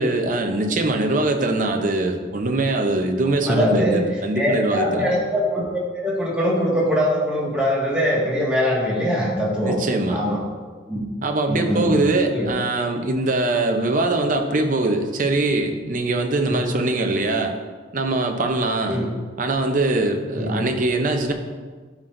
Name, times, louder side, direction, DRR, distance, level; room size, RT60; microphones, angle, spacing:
voice 1, 0.0-5.1 9.7-10.2 11.2-17.6 17.9-19.0 19.4-21.3, right 2 dB, 45° right, 4 dB, 0.7 m, -22 dB
voice 2, 3.3-4.0 4.4-5.6 5.9-9.8 10.1-10.4 10.9-11.0 11.5-12.0 12.3-12.5 16.5-16.6 18.9-19.1 20.4-20.6, equal, 5° right, -6 dB, 1.8 m, -22 dB
11.0 x 5.9 x 2.6 m, 1.5 s
head